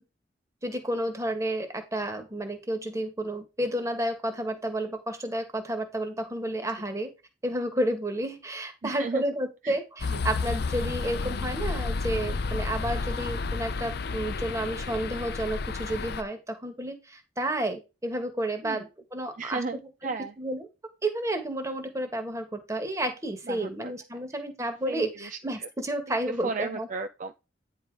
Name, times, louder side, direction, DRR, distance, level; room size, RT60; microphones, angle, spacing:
voice 1, 0.6-7.1 7.4-20.7 21.0-26.9, right 1 dB, 15° right, 1.6 m, -31 dB
voice 2, 8.8-9.2 9.6-9.8 10.1-10.3 18.6-18.8 19.4-20.3 23.5-23.9 24.3-24.4 24.8-25.7 26.4-27.4, right 4 dB, 45° right, 0.5 m, -35 dB
sound 1, 10.0-16.2, left 4 dB, 60° left, 0.7 m, -31 dB
9.8 x 3.9 x 4.7 m
head